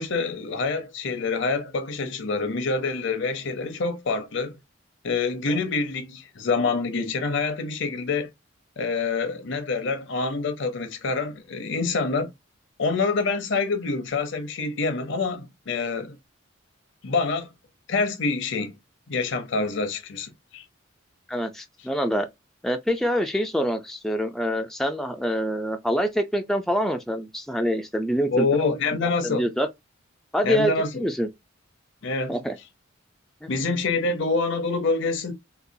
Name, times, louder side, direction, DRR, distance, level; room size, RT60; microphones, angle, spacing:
voice 1, 0.0-4.6 5.0-8.3 8.8-12.3 12.8-16.2 17.0-17.5 17.9-18.8 19.1-20.6 28.3-29.5 30.4-31.1 32.0-32.4 33.5-35.3, left 4 dB, 60° left, 0.7 m, -26 dB
voice 2, 21.3-22.3 22.6-28.5 29.2-29.7 30.3-31.3 32.3-32.6 33.4-33.5, equal, ahead, 0.3 m, -25 dB
3.9 x 2.3 x 2.6 m
head